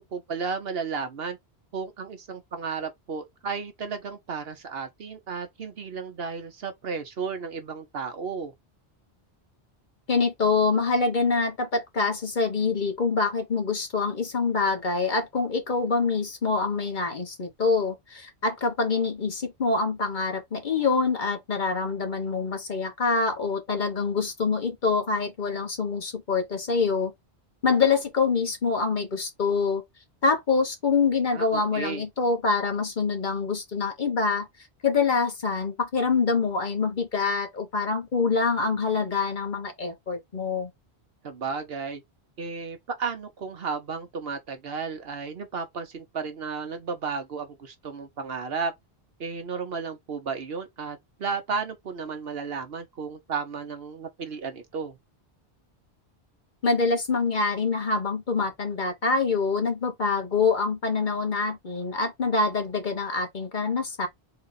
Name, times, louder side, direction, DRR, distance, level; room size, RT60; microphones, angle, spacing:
voice 1, 0.0-1.4 1.7-8.5 31.3-32.1 41.2-42.0 42.4-48.7 49.2-55.0, right 5 dB, 65° right, 1.1 m, -33 dB
voice 2, 10.1-27.1 27.6-29.8 30.2-34.5 34.8-40.7 56.6-64.1, left 4 dB, 45° left, 1.2 m, -25 dB
4.0 x 2.4 x 4.0 m
omnidirectional pair, 1.1 m